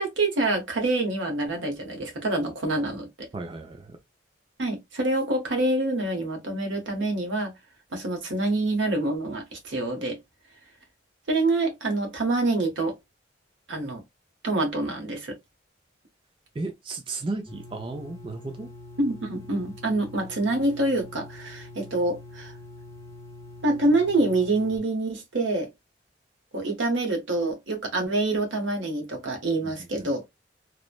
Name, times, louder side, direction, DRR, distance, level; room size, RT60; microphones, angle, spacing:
voice 1, 0.0-3.3 4.6-7.5 7.9-10.2 11.3-12.9 13.7-14.0 14.4-15.3 19.0-22.5 23.6-25.7 26.5-30.2, right 2 dB, 75° right, 0.9 m, -26 dB
voice 2, 3.3-4.0 16.6-18.7 29.6-29.7 30.0-30.1, right 3 dB, 25° right, 0.3 m, -34 dB
sound 1, 17.5-24.8, left 2 dB, 15° left, 0.7 m, -44 dB
3.0 x 2.1 x 2.4 m
head